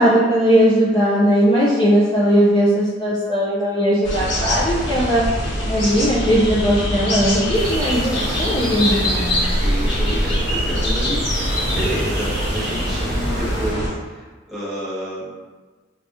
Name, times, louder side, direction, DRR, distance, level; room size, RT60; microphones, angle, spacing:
voice 1, 0.0-5.2 5.7-9.5, equal, 25° left, -7 dB, 0.4 m, -18 dB
sound 1, 4.0-13.9, equal, 65° left, 0.9 m, -23 dB
sound 2, 7.5-13.7, right 1 dB, 60° right, 0.6 m, -32 dB
voice 2, 9.5-15.3, equal, ahead, -9 dB, 1.0 m, -30 dB
4.8 x 2.3 x 2.6 m, 1.3 s
head